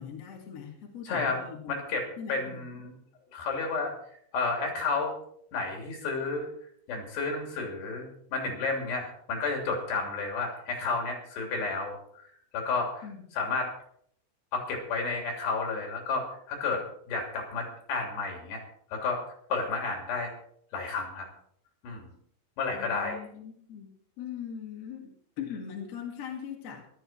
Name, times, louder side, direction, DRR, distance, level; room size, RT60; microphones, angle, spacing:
voice 1, 0.0-1.7 2.2-2.8 13.0-13.4 22.7-26.9, left 8 dB, 45° left, 1 dB, 2.4 m, -41 dB
voice 2, 1.0-2.9 3.3-3.9 4.3-5.2 5.5-6.5 6.9-12.0 12.5-13.1 13.3-13.7 14.5-18.6 18.9-19.2 19.5-20.3 20.7-21.3 21.8-22.1 22.6-23.2, left 4 dB, 65° left, 2 dB, 5.0 m, -31 dB
15.0 x 12.5 x 4.4 m, 0.65 s
omnidirectional pair, 5.4 m